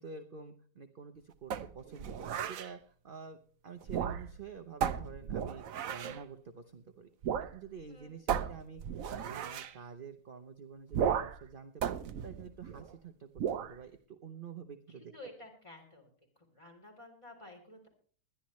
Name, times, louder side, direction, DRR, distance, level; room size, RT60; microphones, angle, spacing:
voice 1, 0.0-8.8 9.1-15.1, right 6 dB, 40° right, 7 dB, 0.9 m, -49 dB
sound 1, 1.5-2.7 3.8-4.4 4.8-6.2 7.2-7.5 7.8-7.9 8.3-9.7 10.9-11.5 11.8-12.9 13.4-13.7, right 8 dB, 65° right, 1.1 m, -35 dB
voice 2, 14.9-16.1 16.4-17.9, left 1 dB, 20° left, 2 dB, 3.5 m, -52 dB
20.5 x 11.5 x 3.1 m, 0.44 s
omnidirectional pair, 1.6 m